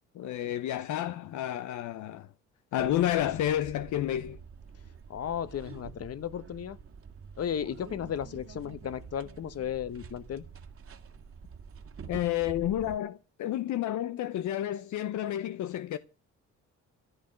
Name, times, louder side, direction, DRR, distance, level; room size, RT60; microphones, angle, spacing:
voice 1, 0.1-2.3 2.7-4.4 12.1-16.0, left 12 dB, 70° left, 0.8 m, -30 dB
sound 1, 2.8-13.0, right 6 dB, 50° right, 2.0 m, -47 dB
voice 2, 5.1-6.8 7.4-10.4, left 9 dB, 55° left, 1.2 m, -34 dB
14.5 x 8.8 x 6.5 m
cardioid pair, 90°, 30 cm